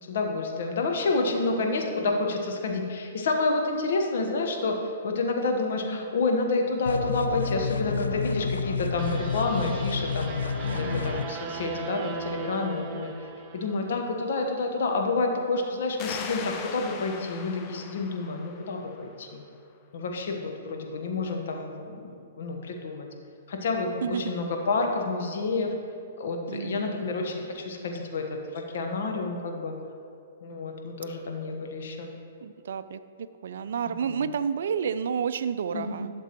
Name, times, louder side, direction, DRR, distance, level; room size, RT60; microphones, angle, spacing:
voice 1, 0.0-10.3 10.6-13.1 13.5-19.4 19.9-23.1 23.5-25.7 26.2-29.7 30.4-32.1 34.0-34.3 35.7-36.1, left 3 dB, 65° left, 3 dB, 1.2 m, -29 dB
sound 1, 6.9-11.2, left 5 dB, 80° left, 0.3 m, -30 dB
sound 2, 9.0-14.3, right 5 dB, 35° right, 0.8 m, -39 dB
voice 2, 10.7-11.1 24.0-24.3 26.5-27.1 32.4-33.0 33.4-36.1, right 7 dB, 65° right, 13 dB, 0.4 m, -31 dB
sound 3, 16.0-19.4, left 6 dB, 35° left, 0.7 m, -40 dB
12.0 x 6.8 x 3.0 m, 2.3 s
hypercardioid pair, 125°, 0 cm